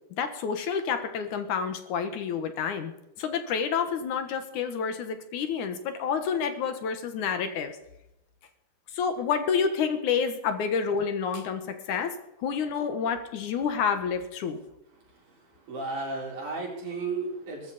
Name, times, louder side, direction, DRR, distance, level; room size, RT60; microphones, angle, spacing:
voice 1, 0.2-2.9 3.2-7.7 8.9-12.1 12.4-14.6, left 6 dB, 70° left, 8 dB, 2.7 m, -29 dB
voice 2, 15.7-17.7, right 3 dB, 65° right, -2 dB, 5.8 m, -33 dB
18.5 x 14.0 x 4.2 m, 0.84 s
omnidirectional pair, 3.7 m